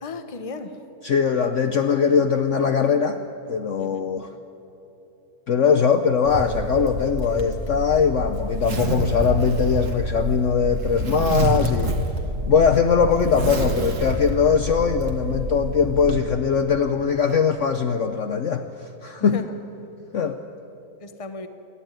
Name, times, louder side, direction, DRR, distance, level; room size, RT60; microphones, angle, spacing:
voice 1, 0.0-0.8 3.8-4.0 19.2-19.5 21.0-21.5, left 3 dB, 25° left, 8 dB, 0.9 m, -35 dB
voice 2, 1.0-3.2 3.5-4.3 5.5-12.0 12.5-18.7 19.0-19.4 20.1-20.4, left 6 dB, 55° left, 7 dB, 0.9 m, -21 dB
Zipper (clothing), 6.3-16.2, right 1 dB, 50° right, 2.1 m, -27 dB
28.5 x 11.5 x 8.9 m, 2.9 s
omnidirectional pair, 1.8 m